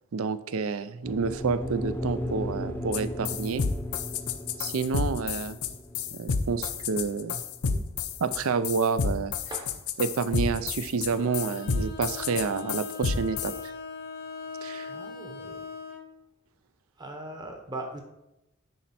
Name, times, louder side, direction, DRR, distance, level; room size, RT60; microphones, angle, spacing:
voice 1, 0.1-3.6 4.6-5.6 6.1-7.8 8.2-9.3 10.0-13.5 14.6-14.9, right 5 dB, 70° right, 14 dB, 0.5 m, -29 dB
sound 1, 1.0-9.3, left 1 dB, 10° left, 0.6 m, -37 dB
sound 2, 2.9-3.0 3.2-13.6, left 5 dB, 85° left, 0.6 m, -30 dB
Bowed string instrument, 11.1-16.1, left 5 dB, 45° left, 0.8 m, -40 dB
voice 2, 14.9-15.7 17.0-18.0, right 2 dB, 20° right, 3 dB, 0.9 m, -39 dB
10.5 x 4.3 x 4.2 m, 0.90 s
head